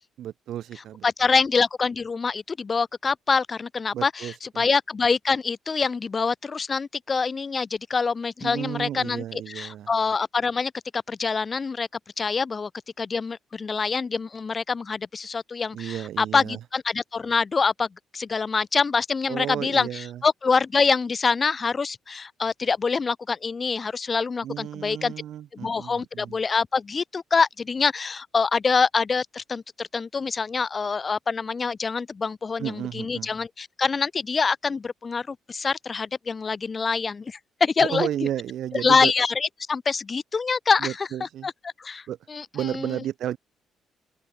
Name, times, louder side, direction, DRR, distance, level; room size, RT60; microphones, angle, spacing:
voice 1, 0.2-1.1 3.9-4.7 8.4-9.9 15.7-16.6 19.3-20.2 24.4-26.4 32.6-33.3 37.8-39.1 40.8-41.5 42.1-42.2 42.5-43.4, right 11 dB, 75° right, 4.1 m, -32 dB
voice 2, 1.0-11.9 12.2-12.7 13.0-25.1 25.5-38.1 38.8-41.1 41.4-42.9, left 5 dB, 35° left, 2.8 m, -25 dB
open air
cardioid pair, 90°, 0 cm